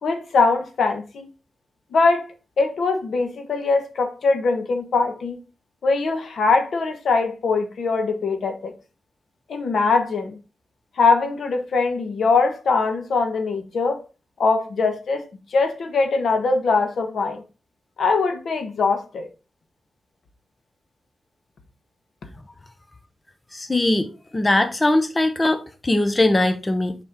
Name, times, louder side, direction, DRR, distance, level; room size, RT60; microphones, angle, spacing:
voice 1, 0.0-1.3 1.9-2.3 2.6-5.4 5.8-8.7 9.5-10.4 11.0-14.0 14.4-15.2 15.5-17.4 18.0-19.3, left 4 dB, 85° left, 1.2 m, -21 dB
voice 2, 23.5-24.1 24.3-27.0, left 2 dB, 20° left, 0.6 m, -20 dB
6.9 x 4.3 x 3.6 m
wide cardioid pair, 170°, 0 cm